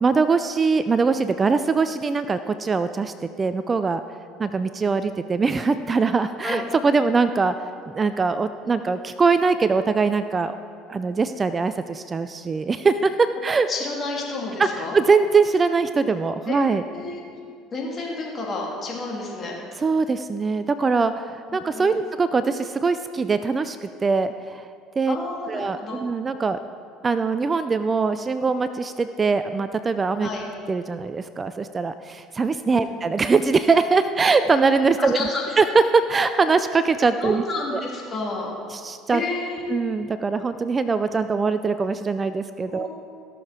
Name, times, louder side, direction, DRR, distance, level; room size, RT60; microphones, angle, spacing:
voice 1, 0.0-4.0 4.4-7.5 7.9-10.5 10.9-13.7 14.6-16.8 19.8-24.7 25.0-25.2 25.5-26.6 27.0-30.3 30.7-35.3 35.6-37.4 37.7-37.8 38.7-39.2 39.7-42.9, right 4 dB, 30° right, 11 dB, 0.4 m, -22 dB
voice 2, 13.7-15.0 16.5-16.6 16.9-17.2 17.7-19.6 21.5-21.9 25.1-26.0 30.2-30.4 32.7-32.9 35.0-35.4 37.2-38.5 39.1-39.7 42.7-42.9, left 3 dB, 40° left, -2 dB, 2.9 m, -30 dB
17.0 x 6.8 x 4.3 m, 2.3 s
hypercardioid pair, 75°, 0 cm